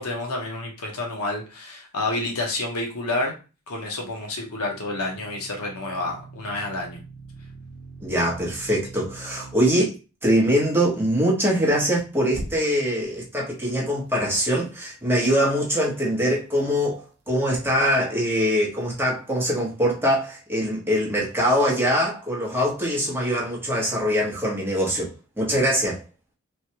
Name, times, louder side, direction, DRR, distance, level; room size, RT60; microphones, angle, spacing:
voice 1, 0.0-3.3 3.7-7.0, left 2 dB, 80° left, 0.9 m, -29 dB
sound 1, 4.0-9.8 12.3-13.0, right 2 dB, 50° right, 0.5 m, -42 dB
voice 2, 8.0-9.9 10.2-26.0, equal, 10° right, 1.0 m, -23 dB
3.2 x 2.2 x 2.9 m
head